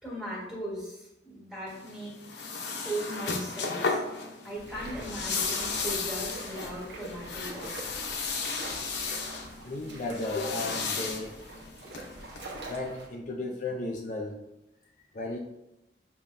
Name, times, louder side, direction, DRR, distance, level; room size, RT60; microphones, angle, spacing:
voice 1, 0.0-2.1 2.5-4.0 4.4-8.0, right 1 dB, 5° right, -8 dB, 1.6 m, -38 dB
sound 1, 1.7-12.4, left 4 dB, 80° left, 0.7 m, -34 dB
sound 2, 4.5-13.1, right 2 dB, 75° right, 1.0 m, -44 dB
voice 2, 9.7-11.4 12.6-14.4 15.1-15.4, left 2 dB, 45° left, 0 dB, 0.4 m, -34 dB
6.9 x 2.8 x 2.6 m, 0.90 s
head